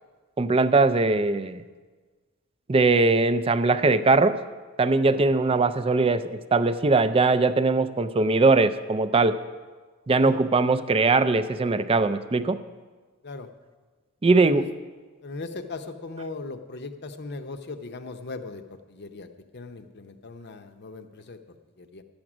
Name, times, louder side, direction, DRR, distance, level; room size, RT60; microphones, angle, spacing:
voice 1, 0.4-1.6 2.7-4.4 4.8-9.4 10.1-12.6 14.2-14.7, right 3 dB, 25° right, 12 dB, 0.4 m, -21 dB
voice 2, 15.2-19.3 19.5-21.4 21.8-22.0, left 3 dB, 50° left, 8 dB, 0.7 m, -38 dB
12.0 x 8.8 x 6.1 m, 1.4 s
head